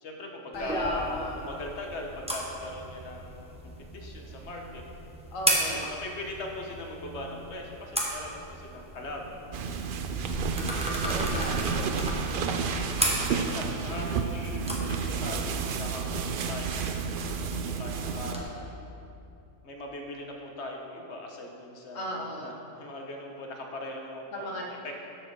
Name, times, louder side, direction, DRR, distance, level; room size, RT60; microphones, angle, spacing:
voice 1, 0.0-4.8 5.7-9.4 13.3-18.7 19.6-25.0, left 2 dB, 60° left, 1 dB, 1.2 m, -40 dB
voice 2, 0.5-1.6 5.3-5.9 10.9-12.3 21.9-22.6 24.3-24.7, equal, 80° left, 0 dB, 1.5 m, -36 dB
sound 1, 0.5-18.4, right 1 dB, 5° right, 1.0 m, -36 dB
sound 2, 9.5-18.3, right 5 dB, 65° right, 0.5 m, -31 dB
12.5 x 4.9 x 4.6 m, 2.7 s
omnidirectional pair, 1.4 m